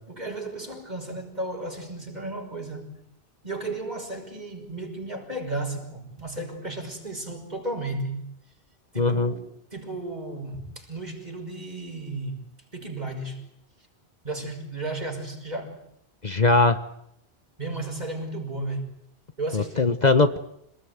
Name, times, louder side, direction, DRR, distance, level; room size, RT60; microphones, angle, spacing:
voice 1, 0.1-3.0 3.4-8.2 8.9-12.4 12.7-13.4 14.2-15.8 17.6-18.9 19.4-19.9, right 2 dB, 40° right, 6.1 m, -34 dB
voice 2, 9.0-9.3 16.2-16.8 19.5-20.4, left 3 dB, 40° left, 1.3 m, -20 dB
27.5 x 20.0 x 9.5 m
omnidirectional pair, 1.1 m